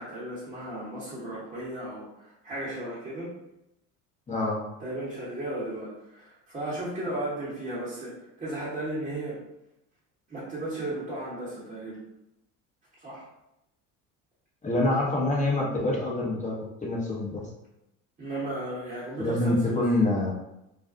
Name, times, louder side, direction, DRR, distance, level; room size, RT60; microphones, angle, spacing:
voice 1, 0.0-3.3 4.8-9.4 10.3-12.0 13.0-13.3 18.2-19.8, right 1 dB, 25° right, -8 dB, 1.0 m, -35 dB
voice 2, 4.3-4.6 14.6-16.5 16.8-17.4 19.2-20.3, left 2 dB, 20° left, -3 dB, 0.8 m, -26 dB
2.5 x 2.2 x 2.5 m, 0.86 s
hypercardioid pair, 75°, 38 cm